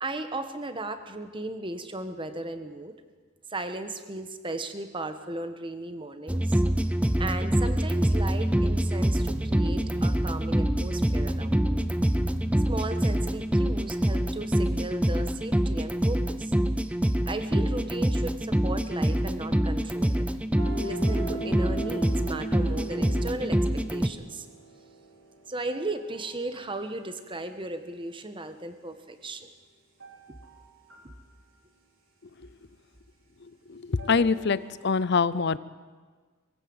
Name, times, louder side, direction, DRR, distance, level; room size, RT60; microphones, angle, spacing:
voice 1, 0.0-2.9 3.5-6.6 7.2-11.8 12.7-16.5 17.2-20.3 20.8-24.4 25.5-29.5 30.3-30.4 31.0-31.1, right 2 dB, 25° right, 9 dB, 1.3 m, -36 dB
sound 1, 6.3-24.1, equal, 5° right, 0.6 m, -25 dB
sound 2, 20.6-26.8 30.0-30.6 30.9-31.2 34.0-34.6 34.9-35.0, right 3 dB, 70° right, 3.8 m, -40 dB
voice 2, 33.7-35.6, left 5 dB, 55° left, 17 dB, 0.6 m, -24 dB
22.0 x 15.5 x 7.9 m, 1.5 s
head